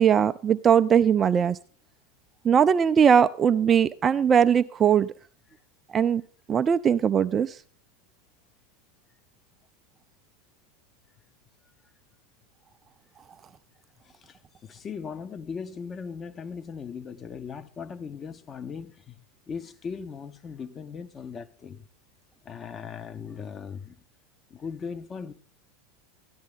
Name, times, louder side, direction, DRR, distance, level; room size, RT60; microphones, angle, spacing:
voice 1, 0.0-1.6 2.4-5.1 5.9-6.2 6.5-7.5, right 8 dB, 30° right, 0.4 m, -20 dB
voice 2, 14.0-14.4 14.6-19.2 19.5-21.9 22.4-24.0 24.5-25.3, left 6 dB, 30° left, 0.9 m, -38 dB
13.5 x 10.5 x 3.6 m
figure-of-eight pair, 85°, 0 cm